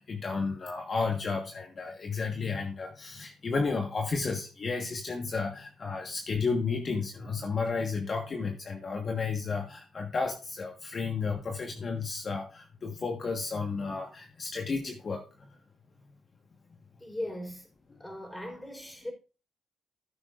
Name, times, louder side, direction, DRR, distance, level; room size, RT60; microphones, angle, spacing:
voice 1, 0.0-15.6, left 4 dB, 45° left, 1.4 m, -32 dB
voice 2, 17.0-17.7 18.0-19.1, left 1 dB, 10° left, 4.3 m, -38 dB
15.0 x 8.7 x 2.5 m
cardioid pair, 70°, 0 cm